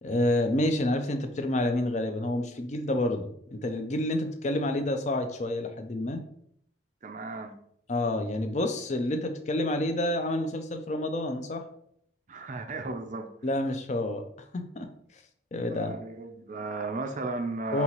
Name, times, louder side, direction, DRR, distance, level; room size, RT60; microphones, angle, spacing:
voice 1, 0.0-6.2 7.9-11.6 13.4-14.2 14.5-14.9 15.5-15.9 17.7-17.8, left 1 dB, 35° left, 6 dB, 0.4 m, -28 dB
voice 2, 7.0-7.5 12.3-13.3 15.7-17.8, right 3 dB, 40° right, 6 dB, 0.4 m, -35 dB
5.4 x 2.8 x 2.9 m, 0.70 s
head